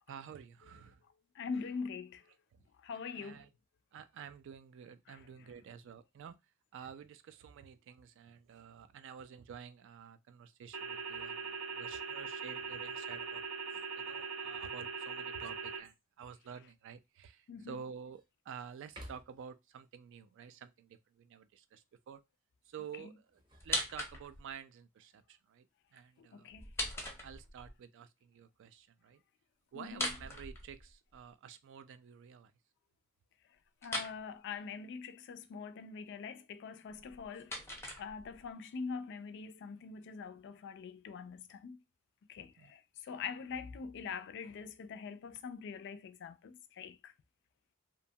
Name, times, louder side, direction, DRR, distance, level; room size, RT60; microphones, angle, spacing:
voice 1, 0.1-1.0 2.5-2.6 3.1-3.5 3.9-6.4 6.7-13.4 13.7-22.2 22.7-23.1 23.6-25.7 25.9-26.5 26.8-26.9 27.2-29.2 29.7-32.5 42.6-42.7, right 7 dB, 60° right, 0.3 m, -50 dB
voice 2, 1.3-2.3 2.8-3.5 5.1-5.5 17.5-17.8 22.9-23.1 26.2-26.7 29.7-30.1 33.8-37.6 38.0-41.8 42.3-47.1, left 5 dB, 55° left, 0.3 m, -44 dB
sound 1, 10.7-15.8, right 5 dB, 90° right, 0.8 m, -41 dB
sound 2, 15.8-16.3 16.9-17.0 17.5-18.3 18.8-19.6 23.1-24.5 25.8-26.4, equal, 20° right, 0.7 m, -56 dB
sound 3, 23.6-24.5 26.5-27.7 29.9-31.2 33.8-34.2 36.9-38.5, left 1 dB, 10° left, 0.6 m, -40 dB
2.7 x 2.2 x 2.7 m
head